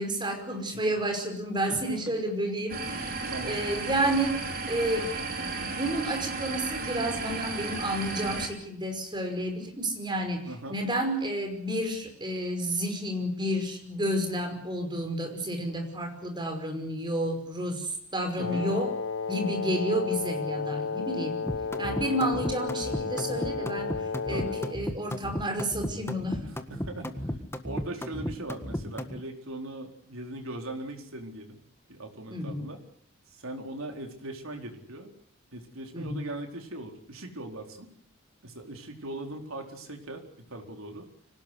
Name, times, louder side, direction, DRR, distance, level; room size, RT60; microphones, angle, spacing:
voice 1, 0.0-4.4 4.7-5.1 5.5-18.9 19.3-21.4 21.8-23.9 24.3-26.5 32.3-32.6 35.9-36.2, right 1 dB, 20° right, 5 dB, 5.5 m, -31 dB
voice 2, 1.7-2.0 3.3-3.6 10.5-10.8 18.4-18.7 24.3-24.6 26.4-27.4 27.6-31.6 31.9-32.8 33.3-35.1 35.5-37.9 38.4-41.1, right 1 dB, 70° right, 4 dB, 4.3 m, -40 dB
sound 1, 2.7-8.5, right 3 dB, 45° right, 4.6 m, -34 dB
Wind instrument woodwind instrument, 18.4-24.8, left 5 dB, 70° left, 1.1 m, -33 dB
sound 2, 21.5-29.2, left 1 dB, 10° left, 1.6 m, -34 dB
25.5 x 18.0 x 8.2 m, 0.64 s
head